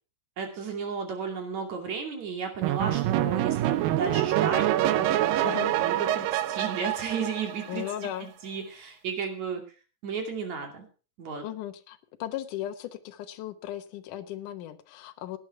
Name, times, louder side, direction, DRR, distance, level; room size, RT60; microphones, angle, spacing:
voice 1, 0.4-9.6 10.0-10.9 11.2-11.5, right 5 dB, 55° right, 4 dB, 3.8 m, -34 dB
sound 1, 2.6-8.1, right 13 dB, 85° right, 2.5 m, -26 dB
voice 2, 7.7-8.3 11.4-15.4, left 12 dB, 70° left, 8 dB, 2.5 m, -36 dB
17.0 x 10.0 x 4.7 m, 0.35 s
omnidirectional pair, 3.9 m